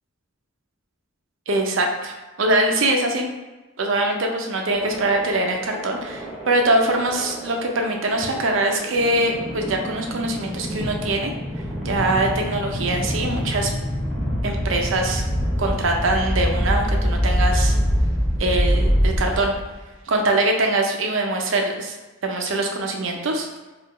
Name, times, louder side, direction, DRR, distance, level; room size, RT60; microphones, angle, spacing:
voice 1, 1.5-3.3 3.8-11.3 11.8-13.7 14.4-15.2 15.6-17.8 18.4-19.5 20.1-21.9 22.2-23.5, right 2 dB, 80° right, 2 dB, 0.6 m, -23 dB
sound 1, 4.7-19.8, equal, 5° right, 0.6 m, -25 dB
4.2 x 2.5 x 3.1 m, 1.2 s
head